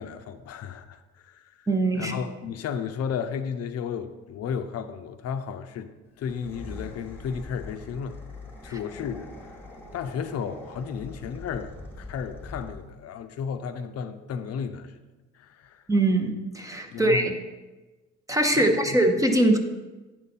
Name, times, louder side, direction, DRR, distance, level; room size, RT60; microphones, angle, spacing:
voice 1, 0.0-1.7 2.0-5.9 6.2-8.2 8.6-9.6 9.9-15.0 15.3-15.8 16.9-17.3 18.5-19.0, left 7 dB, 55° left, 9 dB, 0.6 m, -34 dB
voice 2, 1.7-2.1 15.9-17.3 18.3-19.6, right 1 dB, 10° right, 5 dB, 0.6 m, -22 dB
sound 1, 6.2-13.0, left 2 dB, 5° left, 1.2 m, -43 dB
9.2 x 5.4 x 4.1 m, 1.2 s
cardioid pair, 130°, 30 cm